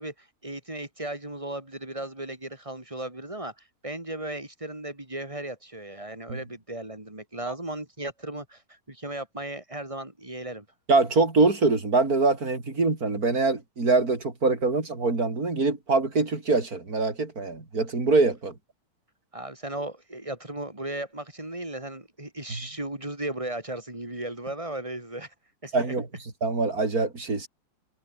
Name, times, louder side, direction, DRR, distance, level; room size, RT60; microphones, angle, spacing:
voice 1, 0.0-3.5 3.8-10.6 19.3-25.3 25.6-25.9, right 1 dB, 10° right, 4.4 m, -36 dB
voice 2, 10.9-18.5 22.5-22.6 25.7-26.1 26.4-27.5, right 3 dB, 25° right, 4.4 m, -24 dB
omnidirectional pair, 4.0 m